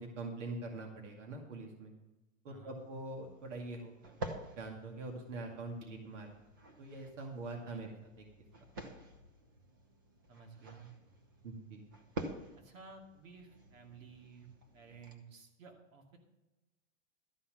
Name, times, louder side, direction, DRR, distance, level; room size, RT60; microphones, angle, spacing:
voice 1, 0.0-1.9 2.4-4.2 4.6-6.3 6.8-8.3 11.4-11.8, right 2 dB, 65° right, 2 dB, 2.3 m, -44 dB
voice 2, 2.5-2.8 7.7-7.8 10.3-10.9 12.6-14.5 14.7-16.2, right 5 dB, 90° right, 2 dB, 2.5 m, -54 dB
sound 1, 2.8-15.1, right 2 dB, 20° right, 0.4 m, -49 dB
13.0 x 5.7 x 7.6 m, 1.0 s
supercardioid pair, 170°, 39 cm